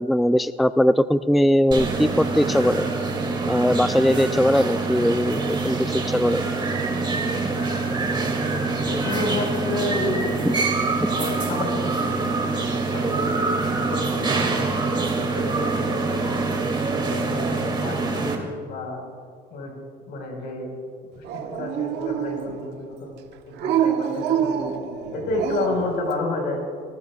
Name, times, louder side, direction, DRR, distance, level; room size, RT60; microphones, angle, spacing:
voice 1, 0.0-2.9 3.5-6.4, equal, ahead, 12 dB, 0.3 m, -20 dB
sound 1, 1.7-18.3, right 3 dB, 30° right, 2.5 m, -25 dB
voice 2, 8.8-10.3 11.1-12.4 12.9-13.4 13.8-16.3 16.9-19.0 19.5-19.7 20.1-20.7 21.2-23.1 23.6-24.6 25.1-26.6, left 2 dB, 80° left, 1 dB, 4.8 m, -30 dB
Dog, 21.2-22.7 23.6-25.9, right 9 dB, 80° right, 1.2 m, -26 dB
25.5 x 19.0 x 2.4 m, 2.1 s
cardioid pair, 110°, 17 cm